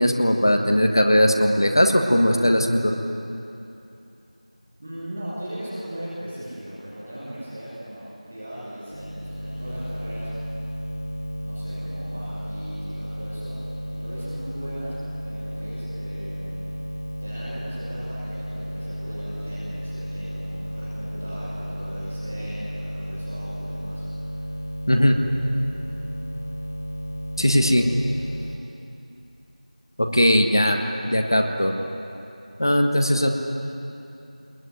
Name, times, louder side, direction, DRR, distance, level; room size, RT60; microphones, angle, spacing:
voice 1, 0.0-2.9 24.9-25.2 27.4-27.9 30.1-30.8 31.1-31.7 32.6-33.3, equal, 35° left, 4 dB, 1.5 m, -19 dB
voice 2, 4.8-10.3 11.4-13.6 13.9-14.9 15.2-16.7 17.2-24.4 27.4-28.7, right 1 dB, 5° right, -8 dB, 1.0 m, -38 dB
sound 1, 8.9-28.6, equal, 15° left, 0.6 m, -33 dB
21.5 x 21.0 x 9.3 m, 2.8 s
figure-of-eight pair, 175°, 4 cm